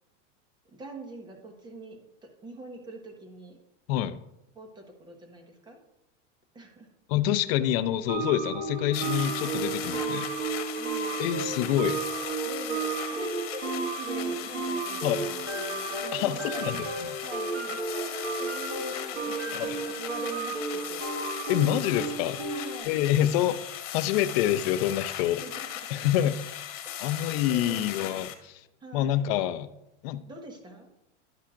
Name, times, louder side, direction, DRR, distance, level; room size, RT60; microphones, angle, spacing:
voice 1, 0.7-3.6 4.5-5.8 6.5-6.9 7.5-7.6 9.9-10.2 10.8-11.2 12.4-16.8 17.2-21.2 22.5-23.0 25.4-26.0 26.8-27.1 27.5-28.2 28.8-29.2 30.3-30.9, right 2 dB, 10° right, 2 dB, 1.0 m, -44 dB
voice 2, 7.1-10.3 11.2-12.0 15.0-15.3 16.1-16.9 19.5-19.8 21.5-22.4 22.9-23.6 23.9-25.4 25.9-26.4 27.0-28.6 28.9-29.7 30.0-30.2, left 12 dB, 50° left, 12 dB, 0.6 m, -26 dB
sound 1, 8.1-22.8, right 4 dB, 30° right, 1.3 m, -33 dB
sound 2, 8.9-28.3, left 11 dB, 70° left, 1.2 m, -38 dB
11.5 x 5.5 x 2.5 m, 0.87 s
supercardioid pair, 145°, 38 cm